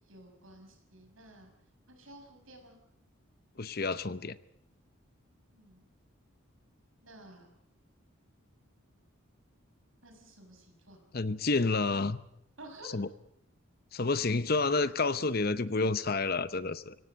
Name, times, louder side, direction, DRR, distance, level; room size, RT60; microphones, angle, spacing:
voice 1, 0.1-1.5 1.9-2.8 5.5-5.8 7.0-7.5 10.0-11.0 12.6-13.0 15.1-15.4, right 1 dB, 70° right, 5 dB, 6.1 m, -52 dB
voice 2, 3.6-4.4 11.1-12.2 12.9-13.1 13.9-17.0, left 3 dB, 45° left, 14 dB, 0.8 m, -29 dB
24.0 x 17.0 x 8.1 m, 0.76 s
head